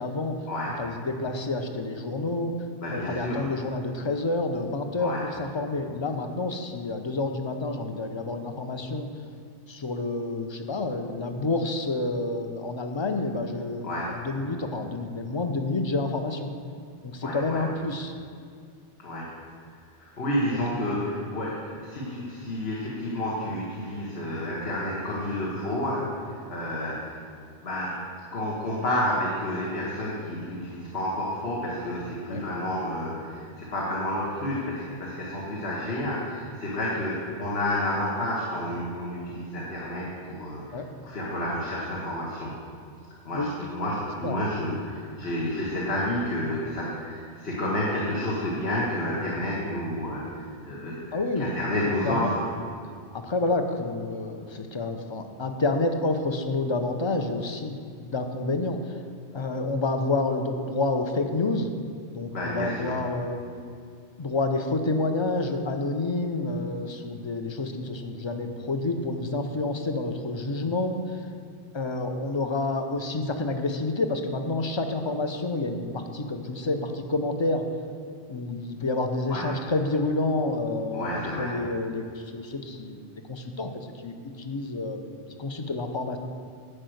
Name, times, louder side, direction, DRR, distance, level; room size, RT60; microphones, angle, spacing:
voice 1, 0.0-0.3 0.8-2.5 2.9-5.1 5.4-9.1 9.7-16.5 17.0-18.1 20.5-20.6 32.3-32.4 40.7-40.8 43.3-43.5 44.2-44.4 51.1-51.5 52.0-52.4 53.1-58.9 59.3-61.7 62.1-63.4 64.2-71.2 71.7-77.6 78.3-85.1 85.4-86.2, left 2 dB, 30° left, 6 dB, 0.7 m, -29 dB
voice 2, 2.8-3.5 5.0-5.2 13.8-14.1 17.2-17.6 19.0-19.3 20.0-27.2 27.6-28.0 28.3-42.5 43.3-52.4 62.3-63.0 79.3-79.4 80.9-81.5, left 1 dB, 60° left, -5 dB, 1.7 m, -30 dB
11.0 x 5.1 x 7.8 m, 2.3 s
omnidirectional pair, 1.2 m